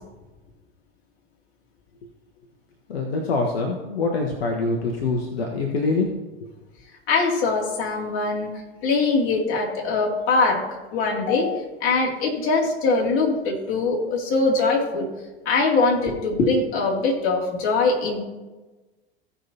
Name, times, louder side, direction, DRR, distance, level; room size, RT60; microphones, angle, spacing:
voice 1, 2.9-6.1 6.4-6.5, left 3 dB, 70° left, 2 dB, 1.2 m, -25 dB
voice 2, 7.1-8.5 8.8-15.1 15.4-18.2, left 3 dB, 40° left, -2 dB, 2.7 m, -22 dB
16.5 x 5.6 x 2.8 m, 1.2 s
figure-of-eight pair, 85°, 32 cm